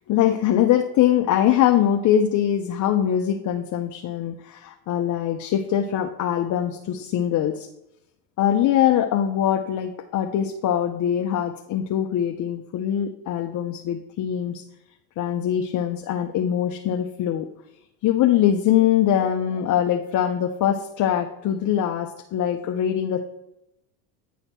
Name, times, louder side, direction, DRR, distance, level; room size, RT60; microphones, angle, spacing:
voice 1, 0.1-7.7 8.4-14.6 15.2-17.5 18.0-23.2, left 10 dB, 40° left, 5 dB, 0.6 m, -22 dB
9.1 x 4.2 x 4.4 m, 0.85 s
supercardioid pair, 95°, 48 cm